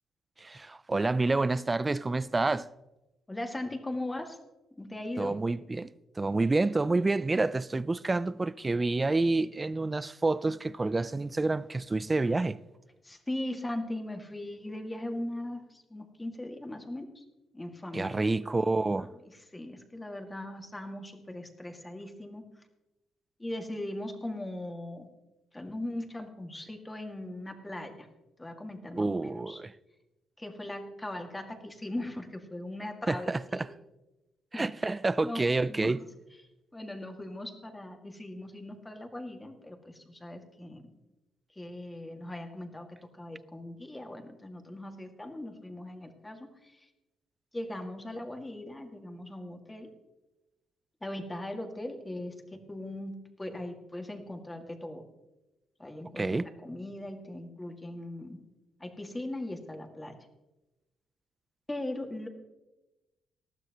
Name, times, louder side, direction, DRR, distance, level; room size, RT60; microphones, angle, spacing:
voice 1, 0.4-2.7 5.2-12.6 17.9-19.1 29.0-29.7 33.1-33.7 34.5-36.0 56.2-56.5, right 3 dB, 20° right, 0.4 m, -28 dB
voice 2, 3.3-4.4 4.7-5.4 13.0-17.2 17.5-18.3 19.0-19.1 19.5-22.4 23.4-25.1 25.5-28.1 28.4-29.6 30.4-33.6 34.5-34.7 35.2-35.9 36.7-40.9 41.5-46.9 47.5-49.9 51.0-55.0 55.8-58.4 58.8-60.2 61.7-62.3, left 1 dB, 15° left, 2.0 m, -39 dB
19.5 x 13.0 x 3.0 m
cardioid pair, 90°, 0 cm